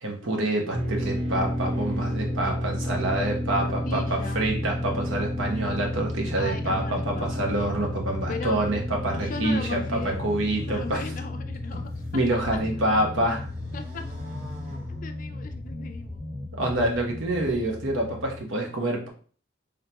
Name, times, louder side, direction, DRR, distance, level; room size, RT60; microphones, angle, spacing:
voice 1, 0.0-11.0 12.1-13.5 16.6-19.1, right 1 dB, 80° right, 2 dB, 1.0 m, -27 dB
sound 1, 0.7-18.4, left 1 dB, 30° right, 0.8 m, -32 dB
sound 2, 3.5-18.0, equal, 25° left, 1.0 m, -39 dB
voice 2, 3.6-4.5 6.4-7.5 8.3-8.6 9.2-10.2 10.7-12.6 13.7-14.0 14.9-16.2 17.4-17.6, left 3 dB, 40° left, 7 dB, 0.4 m, -37 dB
sound 3, 9.6-12.3 12.7-15.6, equal, 45° right, 1.2 m, -48 dB
3.6 x 3.4 x 2.9 m, 0.42 s
head